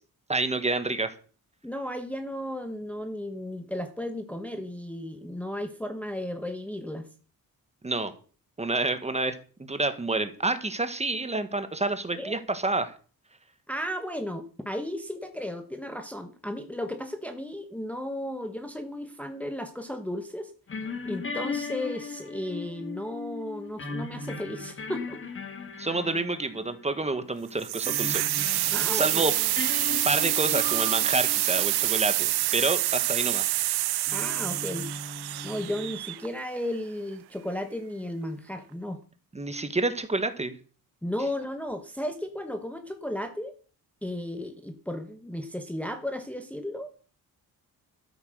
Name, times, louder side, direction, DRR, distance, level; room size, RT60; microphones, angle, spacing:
voice 1, 0.3-1.1 7.8-8.1 8.6-12.9 25.8-28.2 28.5-29.3 30.0-33.5 39.3-40.5, right 2 dB, 15° right, 10 dB, 1.4 m, -28 dB
voice 2, 1.6-7.1 12.1-12.3 13.7-20.5 21.0-25.2 28.7-29.2 34.1-34.9 35.4-39.0 41.0-43.5 44.0-46.9, left 1 dB, 5° left, 6 dB, 1.1 m, -34 dB
sound 1, 20.7-31.9 32.3-32.5 34.1-35.9, left 4 dB, 35° left, 1.7 m, -38 dB
sound 2, 27.6-36.5, right 16 dB, 85° right, 0.5 m, -27 dB
13.0 x 8.6 x 6.4 m, 0.40 s
wide cardioid pair, 145°, 38 cm